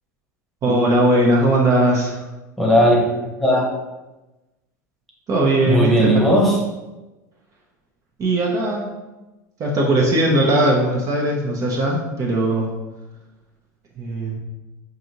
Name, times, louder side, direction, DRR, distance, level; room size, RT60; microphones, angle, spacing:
voice 1, 0.6-2.2 5.3-6.1 8.2-8.9 9.6-12.7 14.0-14.4, right 1 dB, 35° right, -2 dB, 0.8 m, -19 dB
voice 2, 2.6-3.7 5.6-6.6, equal, ahead, -3 dB, 1.1 m, -17 dB
4.9 x 2.6 x 2.9 m, 1.1 s
hypercardioid pair, 100°, 9 cm